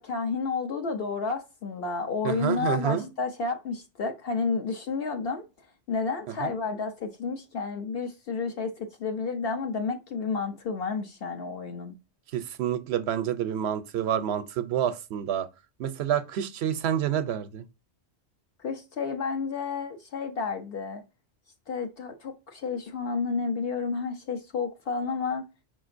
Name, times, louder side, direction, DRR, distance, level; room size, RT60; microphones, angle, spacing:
voice 1, 0.0-5.4 5.9-11.9 18.6-21.0 21.7-25.4, left 4 dB, 65° left, 0.8 m, -31 dB
voice 2, 2.2-3.1 6.4-6.5 12.3-15.5 15.8-17.6, right 10 dB, 75° right, 0.9 m, -28 dB
4.9 x 3.8 x 2.5 m
omnidirectional pair, 1.1 m